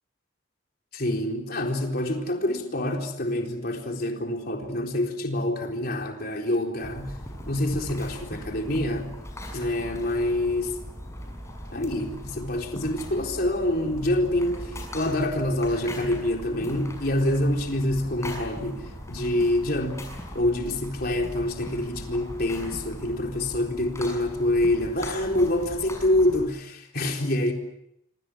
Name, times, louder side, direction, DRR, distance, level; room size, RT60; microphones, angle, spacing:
voice 1, 0.9-7.2 7.5-9.1 9.5-10.8 11.7-20.1 20.3-27.5, left 1 dB, 50° left, 2 dB, 4.0 m, -26 dB
sound 1, 6.8-26.5, equal, 15° left, 6.3 m, -39 dB
26.5 x 26.0 x 6.3 m, 0.78 s
head